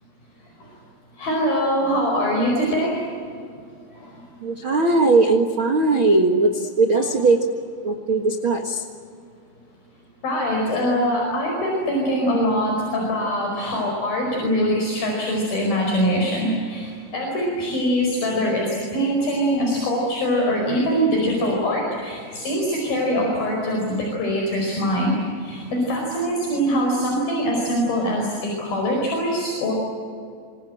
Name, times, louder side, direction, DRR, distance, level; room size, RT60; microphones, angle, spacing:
voice 1, 1.2-3.0 3.9-4.1 7.0-7.1 10.2-29.7, equal, 55° left, -1 dB, 6.7 m, -23 dB
voice 2, 4.4-7.4 7.8-8.8, right 3 dB, 70° right, 4 dB, 1.2 m, -19 dB
27.5 x 26.0 x 7.8 m, 2.3 s
omnidirectional pair, 5.1 m